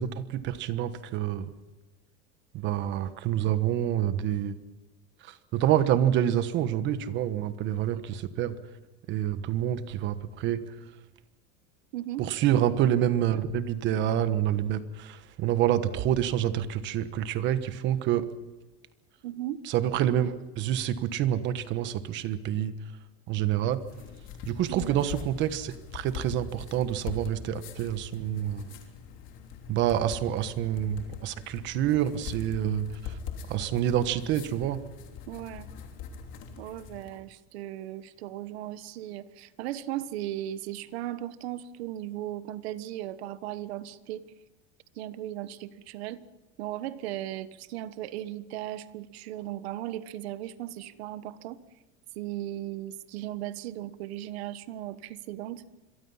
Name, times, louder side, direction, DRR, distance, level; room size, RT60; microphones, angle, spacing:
voice 1, 0.0-1.5 2.5-4.5 5.2-8.6 9.1-10.6 12.2-18.3 19.6-22.7 23.3-23.8 24.5-28.7 29.7-33.1 33.5-34.8, right 11 dB, 35° right, 12 dB, 1.3 m, -27 dB
voice 2, 11.9-12.3 19.2-19.6 24.7-25.0 35.3-35.7 36.6-44.3 44.9-46.2 46.6-51.6 52.1-55.6, right 13 dB, 80° right, 14 dB, 1.3 m, -37 dB
sound 1, 23.7-37.2, left 7 dB, 40° left, 3.2 m, -42 dB
26.5 x 22.5 x 5.7 m, 1.1 s
cardioid pair, 170°, 31 cm